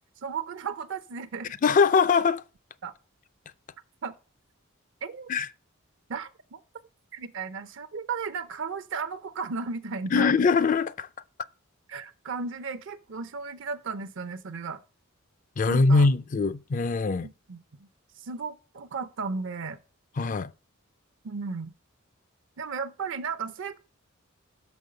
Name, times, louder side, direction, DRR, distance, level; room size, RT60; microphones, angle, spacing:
voice 1, 0.2-1.5 2.8-2.9 4.0-4.1 5.0-5.3 6.1-6.6 7.1-10.3 11.9-14.8 15.7-16.1 17.2-17.9 18.2-19.8 21.2-21.7 22.6-23.8, right 5 dB, 60° right, 0.5 m, -35 dB
voice 2, 1.6-2.4 5.3-5.5 10.1-11.1 15.6-17.3 20.2-20.5, left 4 dB, 35° left, 0.4 m, -22 dB
6.3 x 5.3 x 6.5 m
head